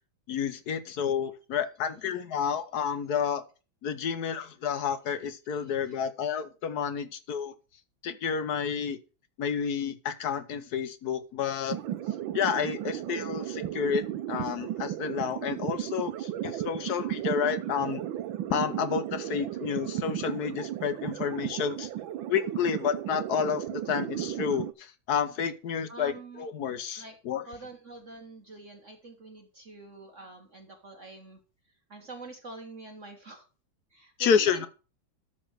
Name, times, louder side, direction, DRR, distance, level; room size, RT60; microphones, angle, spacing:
voice 1, 0.3-3.4 3.8-7.5 8.0-9.0 9.4-11.8 12.3-18.0 18.5-21.9 22.3-27.4 34.2-34.7, left 7 dB, 60° left, 11 dB, 1.2 m, -30 dB
voice 2, 5.5-6.0 25.9-26.5 27.0-27.1 27.5-31.4 31.9-33.4 33.9-34.6, right 3 dB, 40° right, 4 dB, 1.5 m, -46 dB
sound 1, 11.7-24.7, right 11 dB, 75° right, 1.5 m, -34 dB
13.0 x 4.4 x 6.2 m, 0.33 s
omnidirectional pair, 2.2 m